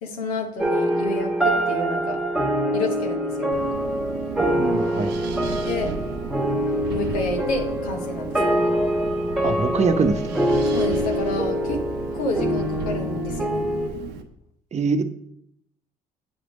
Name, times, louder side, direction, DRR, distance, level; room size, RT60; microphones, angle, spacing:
voice 1, 0.0-2.2 2.7-3.5 5.6-5.9 6.9-8.6 10.7-11.8 12.1-13.6, left 2 dB, 90° left, 3 dB, 1.0 m, -30 dB
sound 1, 0.6-13.9, equal, 5° right, 1.2 m, -24 dB
Wind, 3.5-14.2, right 5 dB, 75° right, 0.7 m, -34 dB
voice 2, 4.4-5.1 9.4-10.3 14.7-15.0, right 4 dB, 40° right, 9 dB, 0.8 m, -23 dB
7.2 x 3.4 x 5.1 m, 0.71 s
hypercardioid pair, 55°, 18 cm